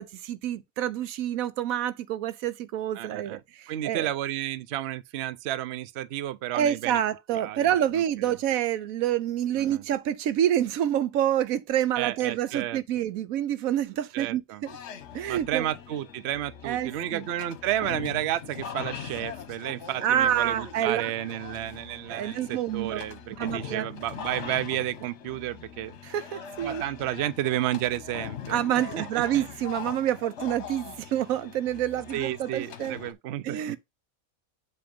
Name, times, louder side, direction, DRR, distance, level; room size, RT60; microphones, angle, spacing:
voice 1, 0.0-4.1 6.5-14.4 15.1-15.7 16.6-17.3 20.0-21.1 22.1-23.0 23.4-23.9 26.1-26.8 28.5-33.0 33.4-33.8, right 11 dB, 90° right, 1.1 m, -27 dB
voice 2, 2.9-3.4 3.7-7.0 7.3-7.7 7.9-8.4 9.6-9.8 12.0-12.8 14.1-14.6 15.3-26.0 26.6-29.5 30.9-31.0 32.1-33.8, right 13 dB, 60° right, 0.8 m, -32 dB
sound 1, 14.7-33.1, left 8 dB, 60° left, 1.1 m, -41 dB
7.7 x 2.9 x 5.1 m
omnidirectional pair, 1.4 m